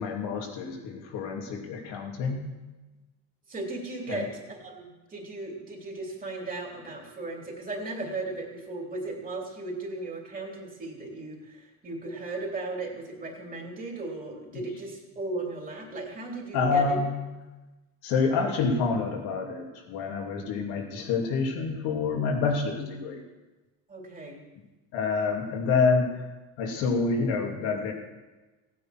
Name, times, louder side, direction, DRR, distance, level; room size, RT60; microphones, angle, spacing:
voice 1, 0.0-2.5 4.1-4.3 16.5-17.1 18.0-23.2 24.9-26.2 26.6-27.9, left 4 dB, 75° left, 0 dB, 2.9 m, -27 dB
voice 2, 3.5-17.0 23.9-24.4, right 2 dB, 25° right, 0 dB, 3.3 m, -36 dB
15.5 x 9.5 x 6.1 m, 1.1 s
cardioid pair, 130°, 36 cm